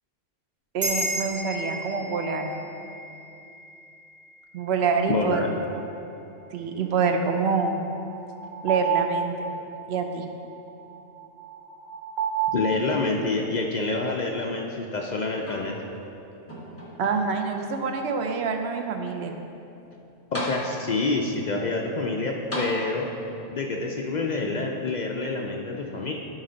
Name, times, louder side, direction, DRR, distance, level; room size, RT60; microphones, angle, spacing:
voice 1, 0.7-2.5 4.5-5.5 6.5-7.8 8.6-9.3 9.9-10.3 17.0-19.3, right 5 dB, 65° right, 4 dB, 0.8 m, -26 dB
sound 1, 0.8-5.5, right 1 dB, 35° right, 1.7 m, -34 dB
voice 2, 5.1-5.5 12.5-15.7 20.3-23.1 23.5-26.1, left 3 dB, 60° left, 0 dB, 0.4 m, -27 dB
sound 2, 5.7-5.8 7.7-12.5, right 8 dB, 85° right, 1.1 m, -31 dB
sound 3, 15.4-16.1 16.5-17.5 18.2-18.3 19.9-20.0 20.3-21.1 22.5-23.3 24.4-24.5, equal, 10° left, 1.1 m, -35 dB
10.5 x 4.3 x 3.9 m, 2.9 s
omnidirectional pair, 1.2 m